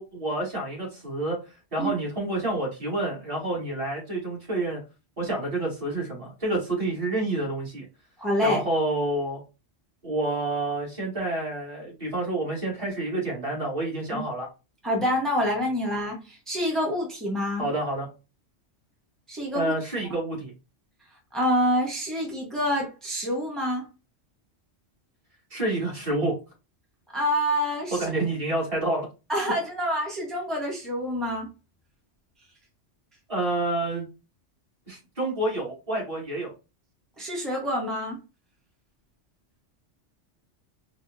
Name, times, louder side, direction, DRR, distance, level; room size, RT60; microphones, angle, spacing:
voice 1, 0.0-1.4 1.7-4.8 5.2-7.8 8.4-9.4 10.0-14.5 17.6-18.1 19.5-20.5 25.5-26.4 27.9-29.1 33.3-34.1 34.9-36.5, right 2 dB, 30° right, -5 dB, 2.1 m, -28 dB
voice 2, 8.2-8.6 14.1-14.2 14.8-17.6 19.3-19.7 20.0-20.1 21.3-23.9 27.1-28.1 29.3-31.5 37.2-38.2, equal, ahead, -2 dB, 0.9 m, -27 dB
4.4 x 2.3 x 2.6 m, 0.29 s
omnidirectional pair, 1.2 m